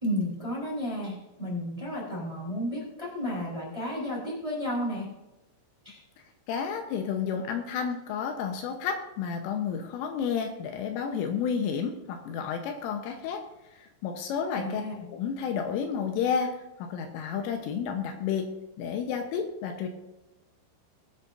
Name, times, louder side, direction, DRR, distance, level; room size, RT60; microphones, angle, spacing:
voice 1, 0.0-5.1 5.8-6.0 14.5-15.1, equal, 10° right, -5 dB, 2.9 m, -32 dB
voice 2, 6.5-13.4 13.8-14.8 15.1-18.5 18.8-19.9, left 7 dB, 80° left, 4 dB, 3.4 m, -31 dB
22.5 x 8.1 x 2.6 m, 1.0 s
omnidirectional pair, 6.0 m